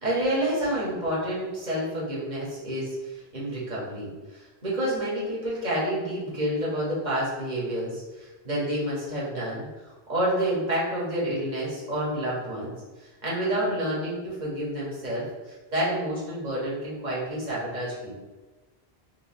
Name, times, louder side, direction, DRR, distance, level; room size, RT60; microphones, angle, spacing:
voice 1, 0.0-9.7 10.1-12.7 13.2-18.1, right 1 dB, 45° right, -7 dB, 1.4 m, -29 dB
3.5 x 2.9 x 3.4 m, 1.2 s
omnidirectional pair, 1.0 m